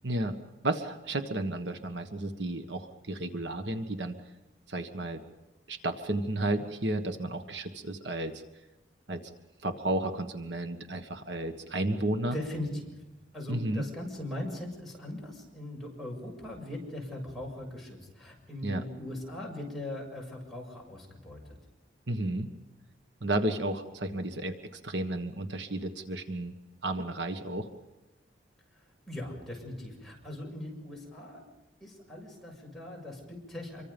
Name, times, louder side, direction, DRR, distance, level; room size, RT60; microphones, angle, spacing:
voice 1, 0.0-0.4 0.6-4.2 4.7-5.2 5.7-8.4 9.1-9.3 9.6-12.4 13.5-13.8 18.6-18.8 22.1-22.5 23.2-24.5 24.8-26.5 26.8-27.7, right 1 dB, 75° right, 7 dB, 1.5 m, -32 dB
voice 2, 12.3-12.9 13.3-21.4 28.7-31.5 31.8-33.8, left 1 dB, ahead, -3 dB, 7.2 m, -40 dB
27.0 x 24.0 x 5.3 m, 1.1 s
head